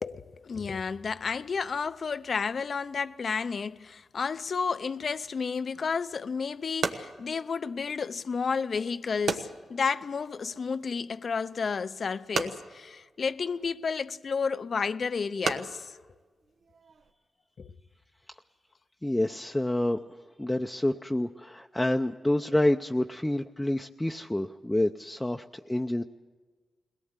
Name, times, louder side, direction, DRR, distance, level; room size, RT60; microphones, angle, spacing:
voice 1, 0.0-16.0 17.6-17.7, left 5 dB, 60° left, 0.5 m, -31 dB
sound 1, 5.7-17.1, right 5 dB, 75° right, 1.2 m, -38 dB
voice 2, 19.0-20.0 20.4-26.0, left 1 dB, 10° left, 0.6 m, -28 dB
21.5 x 17.5 x 8.1 m
cardioid pair, 60°, 0 cm